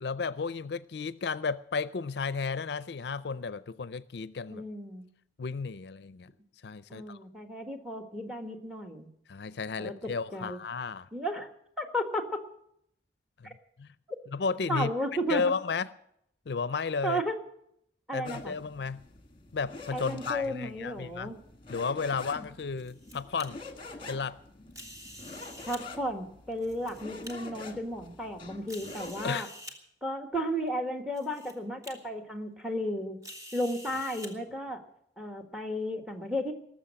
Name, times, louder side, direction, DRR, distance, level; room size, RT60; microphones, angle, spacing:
voice 1, 0.0-4.6 5.4-6.3 6.6-7.2 9.3-11.1 13.4-13.9 14.3-14.9 15.3-15.9 16.5-17.2 18.1-19.0 19.5-21.3 21.7-23.6 24.1-24.4 29.2-29.5, left 5 dB, 65° left, 0.5 m, -33 dB
voice 2, 4.5-5.1 6.9-9.1 9.8-10.6 11.1-11.5 11.8-12.2 13.4-13.5 14.7-15.4 17.0-17.3 18.1-18.5 19.9-21.4 25.7-29.5 30.0-33.2 33.5-34.8 35.2-36.5, equal, ahead, 1.5 m, -34 dB
sound 1, 18.2-29.3, left 3 dB, 30° left, 1.5 m, -46 dB
sound 2, 22.5-23.5 24.7-25.8 26.5-27.3 28.0-28.1 28.7-29.8 30.7-30.8 31.1-31.5 31.8-31.9 33.2-34.3, equal, 20° right, 1.7 m, -47 dB
19.0 x 7.4 x 8.7 m
head